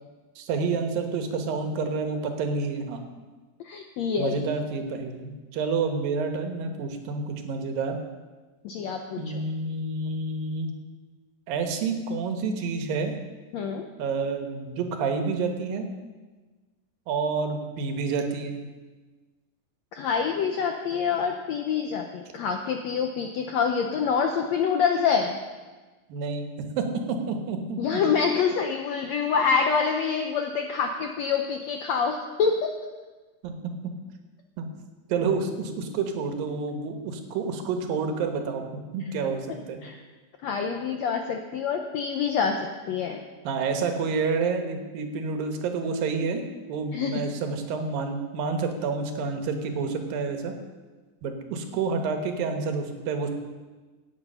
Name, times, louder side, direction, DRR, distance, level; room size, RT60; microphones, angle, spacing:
voice 1, 0.4-3.0 4.2-8.0 9.2-10.7 11.5-13.1 14.0-15.9 17.1-18.6 26.1-26.5 26.8-28.0 33.4-33.6 34.6-34.7 35.1-38.6 38.9-39.8 43.4-46.4 46.7-50.5 51.2-53.3, right 4 dB, 80° right, 5 dB, 3.0 m, -29 dB
voice 2, 3.6-4.4 8.6-9.4 13.5-13.8 19.9-25.4 27.8-32.7 39.8-40.0 40.4-42.6 42.9-43.2 46.9-47.2, left 6 dB, 80° left, 4 dB, 1.5 m, -26 dB
16.5 x 8.9 x 5.5 m, 1.3 s
omnidirectional pair, 4.0 m